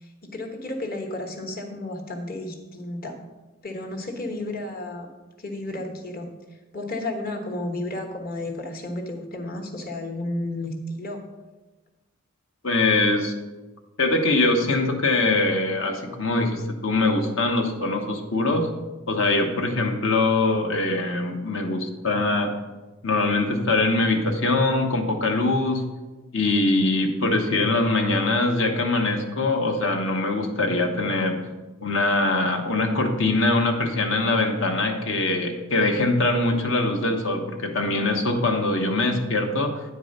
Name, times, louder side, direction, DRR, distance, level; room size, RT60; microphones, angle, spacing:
voice 1, 0.0-3.2 3.6-5.1 5.4-6.3 6.7-11.2, left 2 dB, 45° left, 3 dB, 1.3 m, -32 dB
voice 2, 12.6-13.3 14.0-18.7 19.1-22.5 23.0-25.8 26.3-31.4 31.8-39.8, left 2 dB, 60° left, 3 dB, 1.1 m, -23 dB
9.6 x 4.7 x 6.5 m, 1.2 s
head